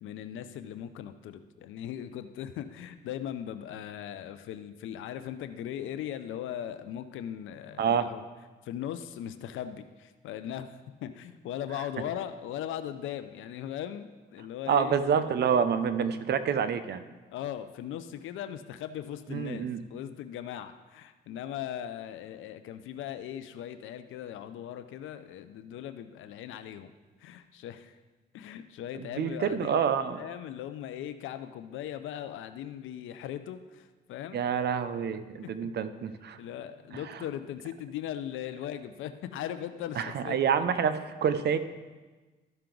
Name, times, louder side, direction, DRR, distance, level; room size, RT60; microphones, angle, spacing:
voice 1, 0.0-8.2 8.6-15.0 17.3-26.9 27.2-27.9 28.3-29.9 30.2-34.4 35.4-35.7 36.4-40.4, left 10 dB, 80° left, 11 dB, 0.5 m, -39 dB
voice 2, 7.8-8.1 14.7-17.0 19.3-19.8 29.2-30.2 34.3-36.4 36.9-37.2 40.0-41.6, right 7 dB, 55° right, 11 dB, 0.7 m, -27 dB
13.5 x 5.7 x 3.8 m, 1.3 s
cardioid pair, 90°, 20 cm